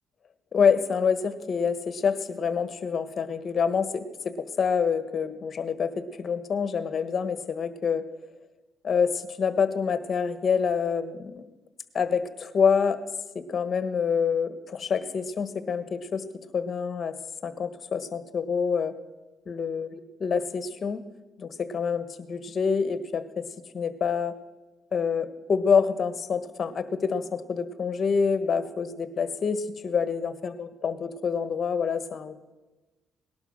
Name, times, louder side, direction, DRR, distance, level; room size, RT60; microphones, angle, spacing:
voice 1, 0.5-8.0 8.8-11.5 11.9-13.0 13.3-16.2 16.5-17.2 17.4-18.9 19.4-21.0 21.4-23.5 23.7-24.3 24.9-32.4, left 6 dB, 45° left, 11 dB, 1.4 m, -27 dB
19.0 x 11.5 x 6.4 m, 1.1 s
cardioid pair, 90°, 0 cm